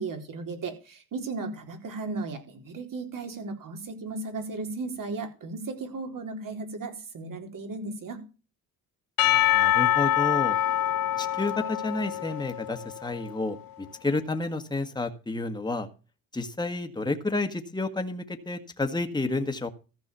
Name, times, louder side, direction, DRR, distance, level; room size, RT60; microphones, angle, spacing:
voice 1, 0.0-8.2, right 3 dB, 55° right, 5 dB, 4.1 m, -35 dB
Percussion / Church bell, 9.2-13.4, left 13 dB, 60° left, 1.2 m, -25 dB
voice 2, 9.5-10.6 11.2-15.9 16.3-19.7, left 2 dB, 10° left, 6 dB, 1.7 m, -30 dB
14.5 x 5.4 x 6.8 m, 0.33 s
supercardioid pair, 70°, 39 cm